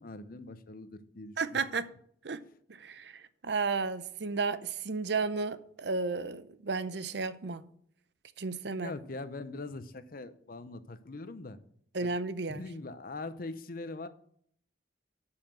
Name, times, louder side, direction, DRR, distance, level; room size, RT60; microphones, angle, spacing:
voice 1, 0.0-1.6 8.8-11.6 12.0-12.1 12.5-14.1, left 2 dB, 50° left, 0.7 m, -42 dB
voice 2, 1.4-1.9 2.2-2.4 2.7-7.7 8.4-8.9 11.9-12.6, right 4 dB, 65° right, 0.7 m, -33 dB
8.8 x 5.8 x 6.5 m
head